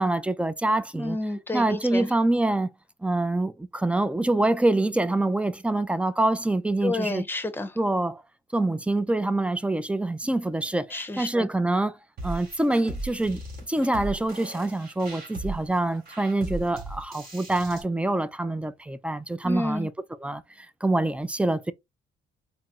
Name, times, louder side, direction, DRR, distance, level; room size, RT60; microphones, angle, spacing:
voice 1, 0.0-1.2 1.5-2.7 3.0-7.3 7.8-8.2 8.5-11.9 12.2-13.4 13.7-19.9 20.2-20.4 20.8-21.7, right 2 dB, 5° right, 0.3 m, -25 dB
voice 2, 0.9-2.1 6.8-7.7 10.9-11.5 19.4-19.9, left 2 dB, 10° left, 0.7 m, -30 dB
sound 1, 12.2-17.8, right 2 dB, 50° right, 1.9 m, -37 dB
4.1 x 2.0 x 3.5 m
cardioid pair, 90°, 20 cm